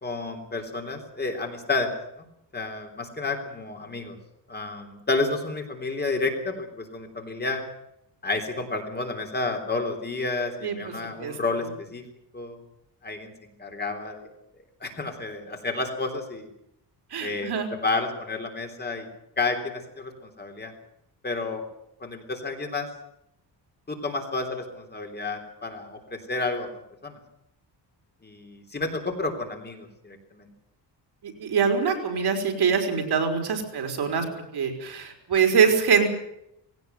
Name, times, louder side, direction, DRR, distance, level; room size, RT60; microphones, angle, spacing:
voice 1, 0.0-1.9 2.2-2.3 2.5-4.2 4.5-7.6 8.2-12.0 12.3-12.6 13.0-14.3 14.8-16.5 17.2-17.5 17.8-19.1 19.4-20.7 21.2-21.6 22.0-22.9 23.9-26.7 27.0-27.1 28.2-30.5, left 3 dB, 25° left, 5 dB, 3.5 m, -30 dB
voice 2, 10.6-10.9 11.2-11.7 17.1-17.7 31.2-34.3 34.5-36.1, right 6 dB, 65° right, 4 dB, 4.4 m, -24 dB
19.5 x 17.5 x 9.3 m, 0.80 s
wide cardioid pair, 160°, 42 cm